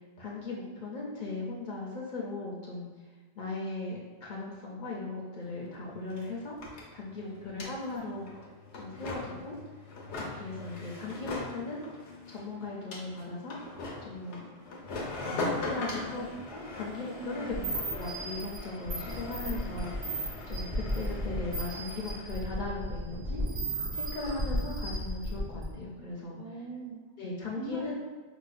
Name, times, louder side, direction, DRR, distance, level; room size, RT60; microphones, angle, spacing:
voice 1, 0.0-2.9 3.4-6.5 6.9-8.3 8.7-9.5 10.1-11.8 12.3-13.6 14.0-14.5 15.2-17.5 17.9-26.4 27.2-28.0, left 3 dB, 55° left, -3 dB, 0.6 m, -38 dB
sound 1, 5.4-5.5 5.7-22.3, left 2 dB, 90° left, 1.0 m, -40 dB
voice 2, 15.7-16.4 17.4-17.8 26.3-27.0 27.5-28.0, right 3 dB, 55° right, -4 dB, 0.5 m, -42 dB
sound 2, 17.5-25.8, right 1 dB, 30° right, 0.8 m, -34 dB
4.9 x 2.2 x 2.4 m, 1.3 s
omnidirectional pair, 1.1 m